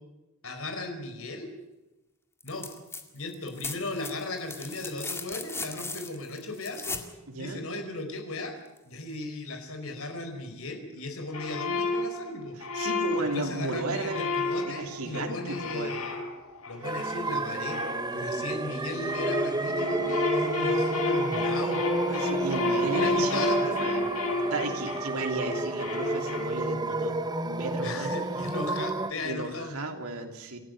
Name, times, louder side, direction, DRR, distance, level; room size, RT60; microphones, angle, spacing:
voice 1, 0.4-1.5 2.4-2.7 3.1-7.0 7.4-8.6 8.8-12.6 13.3-16.3 16.7-17.8 18.1-21.8 22.9-23.9 27.8-29.8, left 2 dB, 70° left, 5 dB, 4.5 m, -36 dB
sound 1, 2.4-3.0 3.3-7.1 8.8-8.9, left 3 dB, 10° left, 2.0 m, -38 dB
voice 2, 7.3-7.6 12.7-14.3 14.6-15.9 22.1-23.4 23.8-24.0 24.5-27.2 27.4-28.1 29.2-30.6, right 2 dB, 85° right, 4 dB, 3.2 m, -34 dB
sound 2, 11.3-18.6 18.9-26.9, left 2 dB, 85° left, 3.9 m, -31 dB
sound 3, 16.8-29.1, right 2 dB, 20° right, 1.1 m, -31 dB
28.0 x 13.5 x 9.4 m, 1.0 s
head